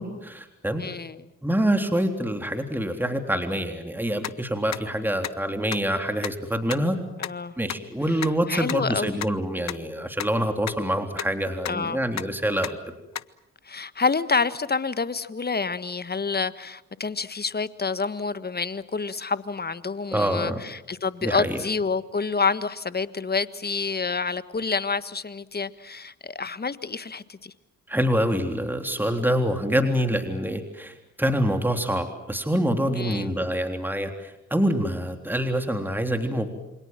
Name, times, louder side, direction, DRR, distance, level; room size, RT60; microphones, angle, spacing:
voice 1, 0.0-0.8 1.4-7.0 7.6-12.8 20.1-20.6 21.2-21.6 27.9-36.5, equal, 5° right, 6 dB, 3.6 m, -26 dB
voice 2, 0.8-1.3 7.2-7.6 8.1-9.2 11.7-12.0 13.6-27.5 32.9-33.3, left 4 dB, 30° left, 14 dB, 1.5 m, -28 dB
sound 1, 4.2-4.3 4.7-4.8 5.2-5.3 5.7-5.8 6.2-6.3 6.7-6.8 7.2-7.3 7.7-7.8 8.2-8.3 8.7-8.8 9.2-9.3 9.7-9.8 10.2-10.3 10.7-10.8 11.2-11.3 11.7-11.8 12.2-12.3 12.6-12.7 13.2-13.3, left 11 dB, 55° left, 0.9 m, -31 dB
28.0 x 25.5 x 7.6 m, 0.92 s
hypercardioid pair, 45°, 32 cm